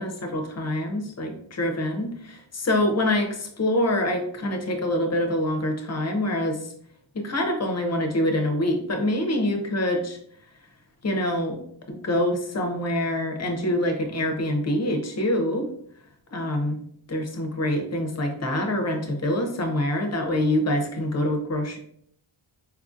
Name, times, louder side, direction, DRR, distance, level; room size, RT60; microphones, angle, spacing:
voice 1, 0.0-6.7 7.1-10.2 11.0-11.6 11.9-15.7 16.3-16.8 17.1-21.8, left 1 dB, 35° left, 4 dB, 0.5 m, -25 dB
4.5 x 2.4 x 2.5 m, 0.67 s
wide cardioid pair, 175°, 48 cm